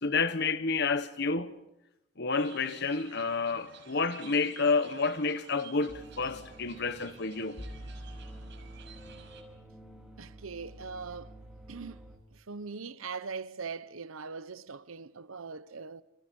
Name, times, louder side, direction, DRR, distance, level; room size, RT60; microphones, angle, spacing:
voice 1, 0.0-1.5 2.2-7.6, left 4 dB, 55° left, 1.4 m, -29 dB
sound 1, 2.3-9.4, right 6 dB, 60° right, 6.2 m, -52 dB
sound 2, 5.9-12.2, right 1 dB, 5° right, 4.1 m, -47 dB
voice 2, 10.2-11.3 11.7-12.0 12.3-16.0, right 5 dB, 90° right, 0.9 m, -41 dB
30.0 x 29.5 x 5.4 m
head